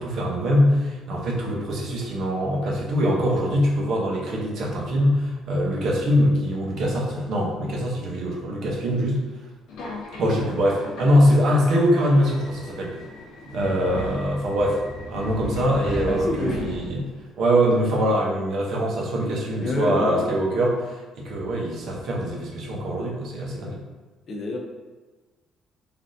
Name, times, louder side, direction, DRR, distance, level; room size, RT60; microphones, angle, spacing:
voice 1, 0.0-9.2 10.2-12.9 13.5-14.8 15.1-17.0 17.4-23.8, equal, 60° right, -2 dB, 0.7 m, -23 dB
Subway metro underground, 9.7-17.2, left 2 dB, 75° left, 0.8 m, -36 dB
voice 2, 16.1-16.7 17.0-17.1 19.6-20.3 24.3-24.6, left 2 dB, 40° left, 1 dB, 0.5 m, -28 dB
3.4 x 2.4 x 2.6 m, 1.3 s
cardioid pair, 135°, 0 cm